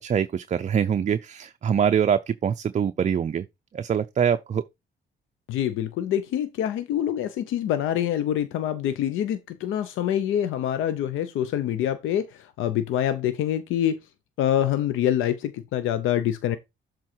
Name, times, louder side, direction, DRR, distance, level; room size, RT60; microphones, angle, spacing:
voice 1, 0.0-3.5 3.7-4.6, right 8 dB, 35° right, 0.5 m, -24 dB
voice 2, 5.5-14.0 14.4-16.6, left 10 dB, 85° left, 0.6 m, -25 dB
7.5 x 3.8 x 4.4 m
cardioid pair, 90°, 20 cm